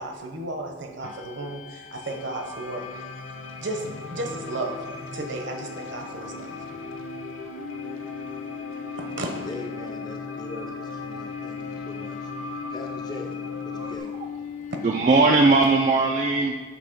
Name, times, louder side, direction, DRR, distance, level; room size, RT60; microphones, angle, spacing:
voice 1, 0.0-3.0 3.6-3.8 4.1-4.8 5.1-6.6 9.2-9.3, right 2 dB, 60° right, 3 dB, 1.0 m, -33 dB
sound 1, 1.0-15.5, left 7 dB, 35° left, 0.3 m, -39 dB
sound 2, 2.0-14.0, left 2 dB, 85° left, 0.7 m, -39 dB
voice 2, 9.4-14.1, left 2 dB, 20° left, 2 dB, 0.7 m, -41 dB
voice 3, 14.8-16.5, right 3 dB, 35° right, 1 dB, 0.4 m, -19 dB
8.3 x 2.9 x 5.9 m, 1.3 s
head